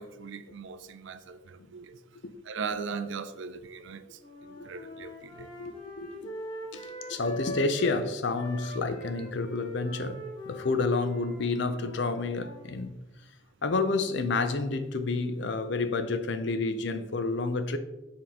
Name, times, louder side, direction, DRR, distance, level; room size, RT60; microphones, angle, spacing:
voice 1, 0.0-2.0 2.5-5.5, right 5 dB, 70° right, 0.4 m, -39 dB
sound 1, 4.2-8.0 8.3-12.7, equal, 25° left, 1.0 m, -42 dB
voice 2, 5.4-6.3 6.7-12.9 13.6-17.8, left 3 dB, 60° left, 0.5 m, -30 dB
6.8 x 3.8 x 3.6 m
head